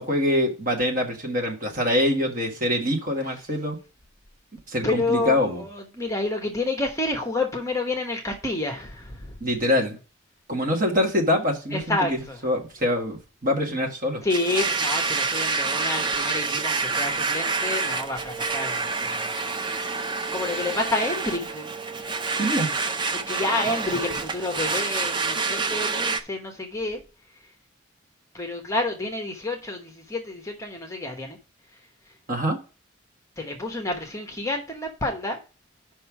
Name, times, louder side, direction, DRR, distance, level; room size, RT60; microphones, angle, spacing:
voice 1, 0.0-3.8 4.7-5.6 9.4-10.0 10.5-14.2 22.3-22.7 32.3-32.6, left 1 dB, 40° right, 1.7 m, -24 dB
voice 2, 4.8-9.3 11.7-12.4 14.2-19.4 20.3-21.7 23.1-27.0 28.3-31.4 33.4-35.4, left 2 dB, 15° left, 1.1 m, -29 dB
Domestic sounds home sounds, 14.3-26.2, right 4 dB, 25° right, 0.5 m, -27 dB
5.5 x 5.4 x 6.1 m
head